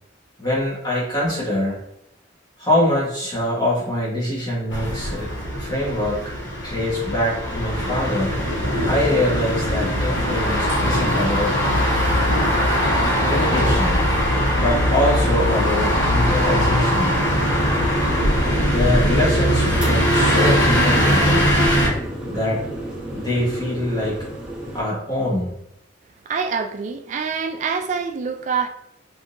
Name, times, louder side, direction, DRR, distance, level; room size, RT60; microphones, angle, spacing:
voice 1, 0.4-1.8 2.6-5.3 5.6-6.3 6.6-8.3 8.9-11.6 13.3-14.0 14.6-17.2 18.7-21.5 22.3-22.6 23.1-24.2 24.7-25.5, left 1 dB, 20° left, 1.2 m, -23 dB
sound 1, 4.7-21.9, equal, 80° left, 1.1 m, -20 dB
sound 2, 16.2-24.8, right 1 dB, 5° right, 0.9 m, -30 dB
voice 2, 26.3-28.7, right 5 dB, 40° right, 0.3 m, -25 dB
3.7 x 2.6 x 2.5 m
head